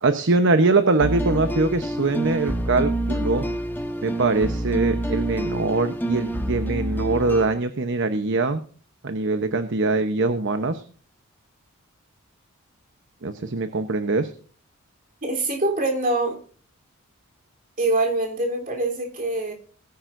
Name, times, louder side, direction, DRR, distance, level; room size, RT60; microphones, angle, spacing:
voice 1, 0.0-3.5 4.0-8.6 9.0-10.8 13.2-14.3, right 3 dB, 55° right, 9 dB, 0.9 m, -22 dB
sound 1, 1.0-7.5, right 1 dB, 10° left, 1.2 m, -27 dB
voice 2, 15.2-16.4 17.8-19.5, right 2 dB, 40° right, 2 dB, 3.6 m, -24 dB
19.0 x 10.5 x 2.6 m, 0.42 s
head